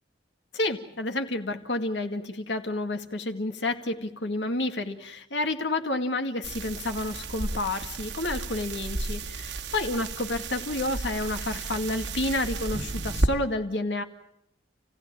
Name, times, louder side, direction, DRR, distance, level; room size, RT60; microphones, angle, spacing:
voice 1, 0.5-14.0, left 2 dB, 75° left, 6 dB, 2.1 m, -30 dB
sound 1, 6.4-13.3, right 2 dB, 80° right, 2.5 m, -32 dB
29.5 x 16.5 x 9.0 m, 0.81 s
head